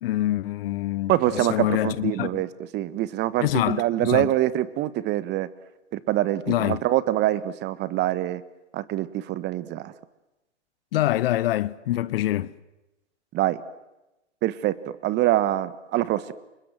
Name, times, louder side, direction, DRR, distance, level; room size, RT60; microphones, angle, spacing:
voice 1, 0.0-2.4 3.4-4.3 6.5-6.8 10.9-12.5, left 14 dB, 50° left, 1.1 m, -25 dB
voice 2, 1.1-2.5 2.7-5.5 5.9-8.4 8.7-9.9 13.3-13.6 14.4-14.8 15.0-16.3, right 14 dB, 30° right, 1.3 m, -24 dB
29.5 x 26.0 x 7.7 m
figure-of-eight pair, 110°, 36 cm